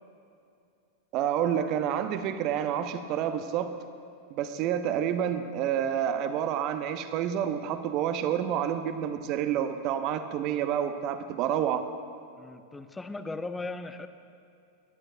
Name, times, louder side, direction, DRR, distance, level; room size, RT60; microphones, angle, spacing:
voice 1, 1.1-3.7 4.3-11.8, right 9 dB, 40° right, 10 dB, 0.7 m, -29 dB
voice 2, 12.4-14.1, left 3 dB, 10° left, 10 dB, 0.6 m, -38 dB
20.5 x 11.0 x 2.6 m, 2.5 s
figure-of-eight pair, 90°, 0 cm